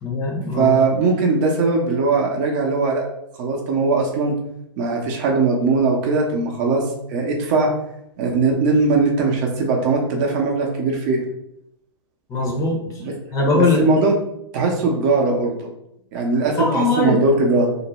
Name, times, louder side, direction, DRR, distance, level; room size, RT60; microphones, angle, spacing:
voice 1, 0.0-0.8 12.3-12.8 13.3-13.8 16.6-17.2, left 3 dB, 25° left, -1 dB, 0.7 m, -20 dB
voice 2, 0.6-3.0 3.4-4.3 4.8-6.8 7.1-7.7 8.2-11.2 13.0-13.1 13.5-14.1 14.5-15.7 16.1-17.8, right 3 dB, 45° right, 0 dB, 0.7 m, -19 dB
2.5 x 2.1 x 3.0 m, 0.78 s
hypercardioid pair, 110°, 14 cm